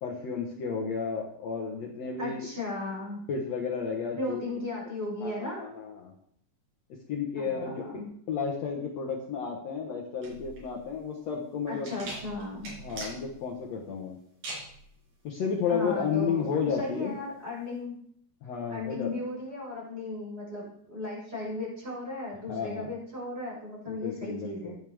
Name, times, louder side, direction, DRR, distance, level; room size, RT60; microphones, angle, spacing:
voice 1, 0.0-2.5 3.3-4.4 5.2-6.1 7.1-7.8 8.3-12.0 12.8-14.2 15.2-17.1 18.4-19.1 22.5-22.9 23.9-24.8, left 6 dB, 75° left, -1 dB, 1.5 m, -32 dB
voice 2, 2.2-3.2 4.2-5.6 7.3-8.1 11.7-12.7 15.7-16.4 16.7-18.1 18.7-24.7, left 2 dB, 15° right, -5 dB, 6.2 m, -36 dB
sound 1, 10.2-17.8, right 2 dB, 75° right, 7.2 m, -44 dB
16.0 x 10.0 x 3.6 m, 0.68 s
omnidirectional pair, 5.0 m